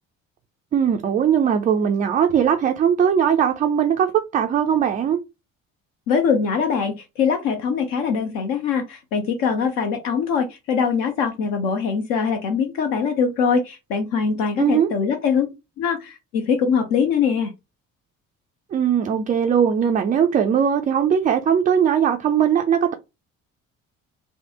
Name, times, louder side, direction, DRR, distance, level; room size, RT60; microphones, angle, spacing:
voice 1, 0.7-5.2 14.6-14.9 18.7-22.9, right 8 dB, 20° right, 0.3 m, -19 dB
voice 2, 6.1-15.5 15.8-17.5, left 6 dB, 60° left, 0.7 m, -22 dB
3.3 x 2.1 x 2.7 m
figure-of-eight pair, 50°, 41 cm